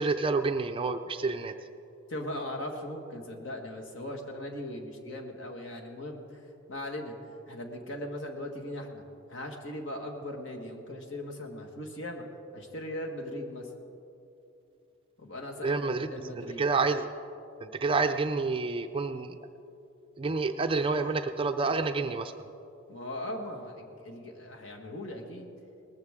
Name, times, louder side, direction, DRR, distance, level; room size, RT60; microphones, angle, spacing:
voice 1, 0.0-1.5 15.6-17.1 17.6-19.4 20.2-22.4, right 4 dB, 25° right, 7 dB, 0.4 m, -29 dB
voice 2, 2.1-6.2 6.7-7.1 7.5-9.0 9.3-12.2 12.5-13.7 15.2-16.6 22.9-25.5, left 1 dB, 60° left, 1 dB, 1.6 m, -39 dB
19.5 x 14.0 x 3.6 m, 2.8 s
head